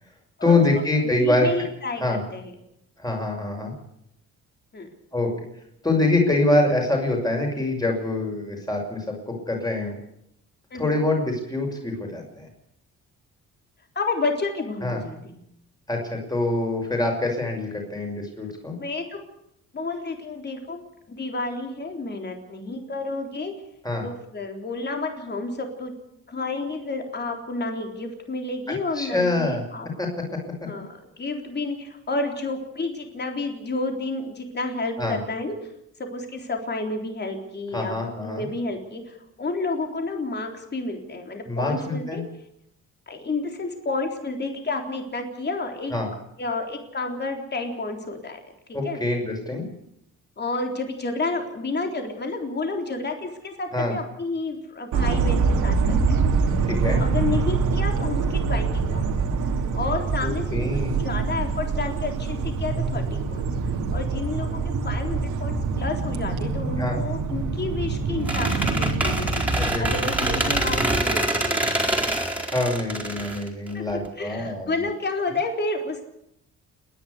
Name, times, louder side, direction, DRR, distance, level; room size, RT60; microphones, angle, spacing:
voice 1, 0.4-1.5 2.0-2.2 3.0-3.7 5.1-5.3 5.8-10.0 10.7-12.5 14.8-15.0 15.9-18.7 23.8-24.1 28.9-29.6 30.0-30.1 35.0-35.2 37.7-38.5 41.5-42.2 45.9-46.1 48.7-49.7 53.7-54.0 56.6-57.0 60.5-60.9 66.8-67.0 69.6-69.9 72.5-74.7, left 2 dB, 15° left, 1 dB, 6.2 m, -25 dB
voice 2, 1.2-2.5 4.7-4.9 10.7-11.0 14.0-15.4 18.8-19.2 19.7-20.8 21.1-23.5 24.0-25.9 26.3-29.9 30.6-35.5 36.0-42.2 43.1-46.0 46.4-48.4 48.7-49.0 50.4-56.2 56.8-59.0 59.7-60.6 61.0-71.9 73.7-76.0, left 3 dB, 35° left, 4 dB, 3.8 m, -30 dB
sound 1, 54.9-71.0, right 4 dB, 75° right, 2.8 m, -25 dB
Squeak, 68.3-74.1, right 1 dB, 5° right, 4.5 m, -25 dB
29.5 x 11.0 x 8.2 m, 0.76 s
cardioid pair, 90°, 30 cm